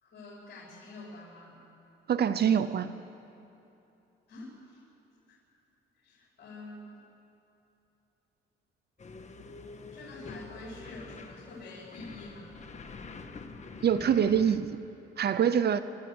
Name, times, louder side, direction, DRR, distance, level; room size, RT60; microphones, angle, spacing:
voice 1, 0.0-1.6 2.4-2.7 4.3-4.8 6.0-6.9 9.9-12.6, left 2 dB, 60° left, -4 dB, 4.5 m, -47 dB
voice 2, 2.1-2.9 13.8-14.8 15.2-15.8, right 8 dB, 55° right, 13 dB, 0.7 m, -25 dB
sound 1, 9.0-14.6, left 4 dB, 35° left, 1.5 m, -46 dB
25.0 x 13.0 x 7.9 m, 2.9 s
cardioid pair, 90°, 20 cm